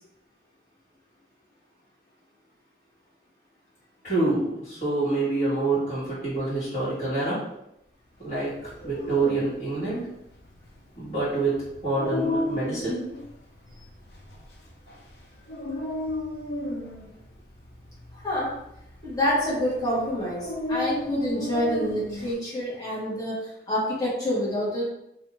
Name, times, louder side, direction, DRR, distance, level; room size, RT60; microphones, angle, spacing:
voice 1, 4.0-7.4 8.2-10.0 11.0-11.6 11.8-13.0, right 2 dB, 40° left, -12 dB, 1.3 m, -26 dB
Dog, 8.6-22.3, left 1 dB, 60° left, 0.5 m, -34 dB
voice 2, 18.1-18.5 19.0-24.9, equal, 20° left, -7 dB, 0.9 m, -27 dB
2.5 x 2.3 x 3.0 m, 0.82 s
head